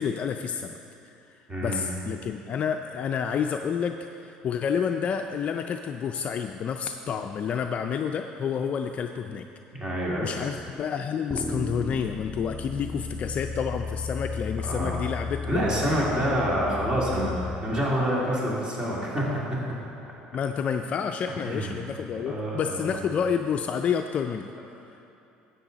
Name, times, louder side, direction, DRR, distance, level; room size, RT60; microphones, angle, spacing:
voice 1, 0.0-9.5 10.2-15.6 20.3-24.5, left 7 dB, 45° left, 5 dB, 0.4 m, -29 dB
voice 2, 1.5-1.9 9.7-10.3 14.6-15.0 15.4-19.2 19.5-19.6 21.4-21.8 22.2-22.9, equal, 25° right, -5 dB, 2.6 m, -27 dB
sound 1, 11.3-17.6, left 4 dB, 10° right, 1.5 m, -34 dB
12.0 x 8.3 x 4.0 m, 2.9 s
supercardioid pair, 105°, 3 cm